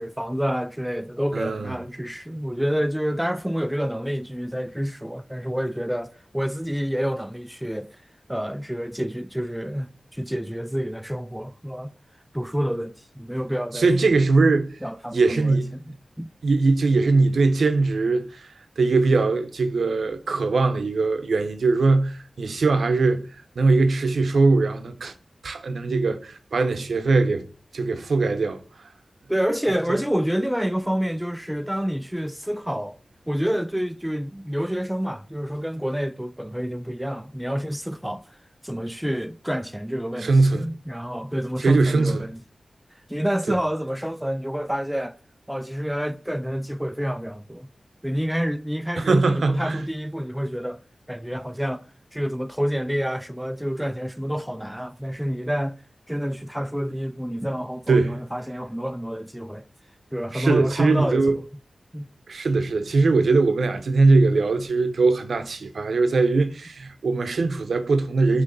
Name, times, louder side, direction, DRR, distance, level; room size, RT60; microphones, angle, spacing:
voice 1, 0.0-7.9 8.3-11.9 12.3-14.2 14.8-16.3 29.3-33.0 33.3-38.2 38.6-42.4 43.1-45.2 45.5-47.7 48.0-50.8 51.1-51.8 52.1-55.8 56.1-59.7 60.1-61.4 61.9-62.1, equal, 5° right, 0.3 m, -28 dB
voice 2, 1.3-1.7 13.7-14.8 15.1-15.7 16.4-18.5 18.8-23.3 23.6-25.1 25.4-27.4 27.7-28.6 29.9-30.0 40.2-40.7 41.6-42.3 43.5-43.6 49.0-49.8 57.9-58.2 60.3-61.4 62.3-68.4, right 3 dB, 85° right, 0.7 m, -21 dB
6.4 x 3.2 x 5.4 m
wide cardioid pair, 110°, 0 cm